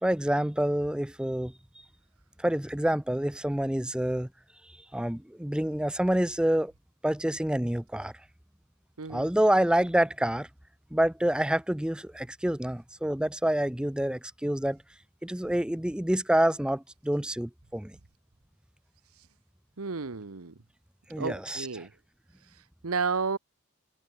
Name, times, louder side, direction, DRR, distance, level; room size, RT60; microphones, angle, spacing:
voice 1, 0.0-1.5 2.4-4.3 4.9-6.7 7.0-8.1 9.1-10.5 10.9-14.8 15.2-18.0 21.1-21.7, right 1 dB, 5° right, 0.5 m, -27 dB
voice 2, 9.0-9.3 19.8-20.5 21.2-21.9 22.8-23.4, right 5 dB, 80° right, 1.0 m, -31 dB
head